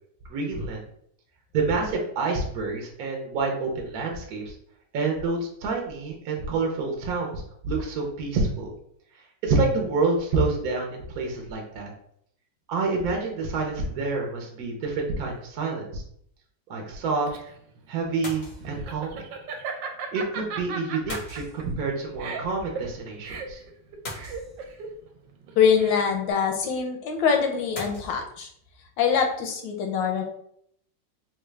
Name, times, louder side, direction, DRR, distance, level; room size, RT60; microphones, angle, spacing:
voice 1, 0.3-0.8 1.5-4.5 4.9-8.7 9.4-11.9 12.7-16.0 16.7-17.3 17.9-19.2 20.1-23.6, right 3 dB, 65° right, 1 dB, 1.0 m, -28 dB
sound 1, 15.3-15.6 18.2-18.9 21.1-22.0 24.0-25.0 27.7-28.2, left 1 dB, 45° left, 0.6 m, -39 dB
Laughter, 16.9-26.3, right 5 dB, 80° right, 1.3 m, -37 dB
voice 2, 25.6-28.5 29.0-30.2, left 6 dB, 80° left, 4 dB, 1.4 m, -23 dB
3.8 x 2.3 x 3.1 m, 0.69 s
omnidirectional pair, 2.0 m